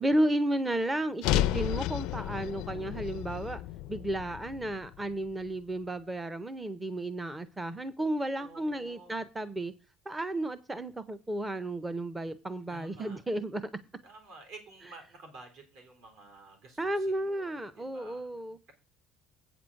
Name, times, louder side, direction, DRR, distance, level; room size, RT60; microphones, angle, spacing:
voice 1, 0.0-3.6 3.9-9.7 10.1-13.6 16.8-18.6, right 1 dB, 10° right, 0.5 m, -33 dB
sound 1, 1.2-5.5, left 14 dB, 75° left, 0.4 m, -32 dB
voice 2, 1.2-1.8 8.4-9.2 12.7-13.2 14.0-18.3, right 2 dB, 70° right, 3.9 m, -51 dB
8.4 x 6.0 x 6.2 m
cardioid pair, 165°, 0 cm